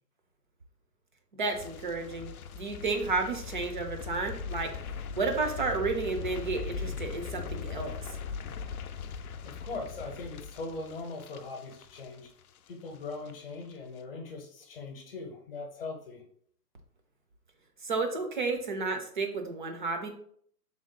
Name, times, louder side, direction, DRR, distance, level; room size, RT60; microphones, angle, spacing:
voice 1, 1.3-4.7 5.2-7.9 17.8-20.1, right 3 dB, 35° right, 4 dB, 0.5 m, -32 dB
sound 1, 1.5-12.7 12.9-13.3 13.6-13.7, left 6 dB, 65° left, 0.5 m, -40 dB
voice 2, 9.4-12.3 12.7-16.2, left 3 dB, 35° left, 2 dB, 0.8 m, -40 dB
5.0 x 3.6 x 2.2 m, 0.62 s
hypercardioid pair, 150°, 48 cm